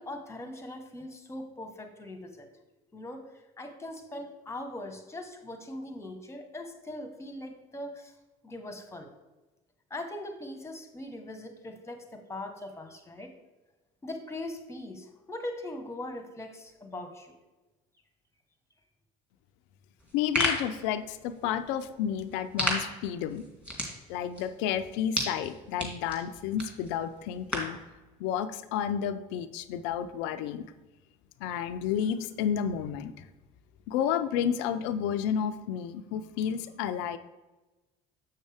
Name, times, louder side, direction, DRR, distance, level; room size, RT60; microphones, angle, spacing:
voice 1, 0.0-2.5 2.9-3.3 3.6-8.1 8.4-9.1 9.9-13.3 14.0-17.3, left 1 dB, 15° left, 6 dB, 1.3 m, -40 dB
sound 1, 20.0-27.8, equal, 5° right, 2.7 m, -35 dB
voice 2, 20.1-23.5 24.1-27.8 28.2-30.6 31.4-33.1 33.9-37.2, left 9 dB, 75° left, 11 dB, 0.5 m, -31 dB
7.2 x 6.4 x 3.4 m, 1.1 s
hypercardioid pair, 70°, 19 cm